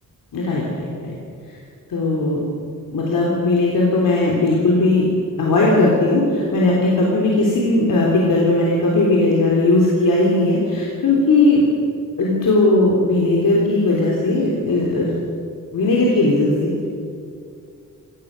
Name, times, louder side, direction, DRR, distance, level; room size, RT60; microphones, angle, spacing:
voice 1, 0.3-1.2 1.9-2.4 2.9-5.1 5.4-11.6 12.2-15.2 15.7-16.9, left 2 dB, 80° left, -3 dB, 3.6 m, -18 dB
24.0 x 18.0 x 6.7 m, 2.4 s
wide cardioid pair, 175°, 33 cm